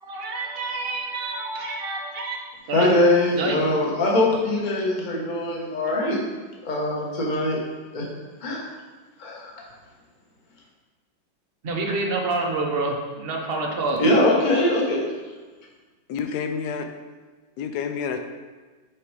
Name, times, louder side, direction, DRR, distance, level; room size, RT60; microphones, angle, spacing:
voice 1, 0.0-2.4 2.7-3.0 3.3-3.6 11.6-14.0, right 3 dB, 50° right, 1 dB, 0.7 m, -27 dB
voice 2, 2.7-6.3 6.6-7.6 7.9-8.1 8.4-8.6 9.2-9.5 14.0-15.0, left 1 dB, 30° left, -3 dB, 1.1 m, -22 dB
voice 3, 16.1-16.9 17.6-18.2, left 6 dB, 75° left, 7 dB, 0.9 m, -28 dB
6.3 x 4.8 x 4.7 m, 1.3 s
omnidirectional pair, 2.1 m